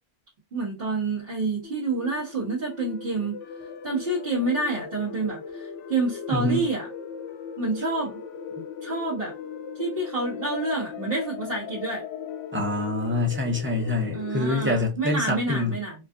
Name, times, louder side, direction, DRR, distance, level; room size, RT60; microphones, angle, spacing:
voice 1, 0.5-3.4 3.8-6.9 7.6-8.2 8.8-9.3 9.7-12.0 14.1-15.9, right 3 dB, 55° right, 1.7 m, -28 dB
sound 1, 1.6-14.7, left 7 dB, 80° left, 0.9 m, -38 dB
voice 2, 6.3-6.7 12.5-15.8, left 2 dB, 15° right, 0.6 m, -26 dB
4.8 x 2.4 x 2.4 m
omnidirectional pair, 1.2 m